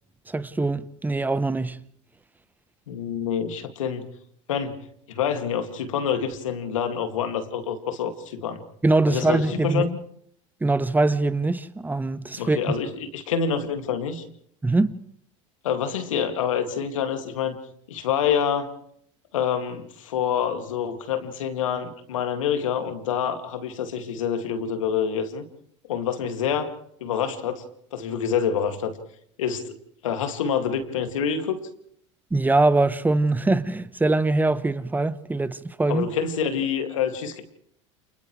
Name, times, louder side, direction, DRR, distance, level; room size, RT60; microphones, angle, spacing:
voice 1, 0.3-1.8 8.8-9.9 10.6-12.6 14.6-14.9 32.3-36.1, right 2 dB, 10° right, 1.0 m, -22 dB
voice 2, 2.9-4.1 4.5-4.8 5.1-8.6 9.1-10.0 12.4-14.2 15.6-17.6 17.9-18.7 19.3-25.4 25.9-26.7 27.0-27.6 27.9-29.0 29.4-29.7 30.0-31.6 35.9-37.4, left 7 dB, 80° left, 2.4 m, -27 dB
29.5 x 28.5 x 3.3 m
hypercardioid pair, 85°, 16 cm